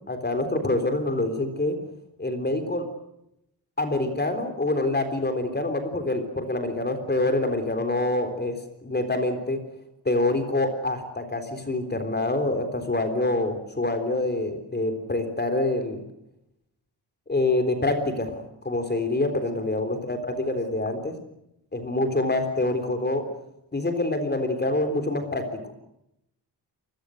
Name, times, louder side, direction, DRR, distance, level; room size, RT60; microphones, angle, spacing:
voice 1, 0.1-1.8 2.2-2.8 3.8-9.6 10.1-16.0 17.3-21.2 21.7-23.3 23.7-25.6, left 2 dB, 25° left, 7 dB, 3.7 m, -26 dB
27.5 x 22.0 x 6.5 m, 0.82 s
wide cardioid pair, 140°, 42 cm